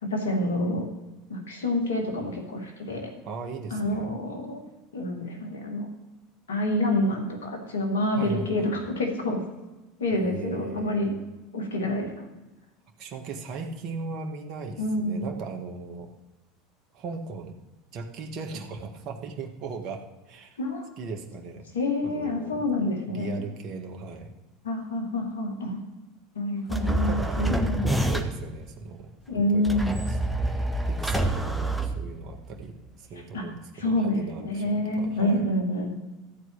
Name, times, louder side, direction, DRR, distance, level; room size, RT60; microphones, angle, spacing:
voice 1, 0.0-0.9 1.3-3.1 3.7-4.6 4.9-5.9 6.5-9.4 10.0-11.1 11.5-12.3 14.8-15.3 20.6-20.9 21.7-23.4 24.6-25.8 26.3-27.9 29.3-30.0 33.1-33.5 33.7-35.9, left 1 dB, 75° left, 2 dB, 2.6 m, -27 dB
voice 2, 3.3-4.1 8.2-8.7 10.1-11.2 13.0-16.1 16.9-17.6 17.9-20.6 21.0-21.7 22.0-22.7 23.1-24.3 26.9-27.4 27.8-29.1 29.5-35.4, right 4 dB, 50° right, 3 dB, 1.8 m, -38 dB
sound 1, 26.7-28.5 29.6-32.5, right 1 dB, ahead, 1.4 m, -27 dB
13.5 x 4.7 x 8.5 m, 1.1 s
figure-of-eight pair, 75°, 0 cm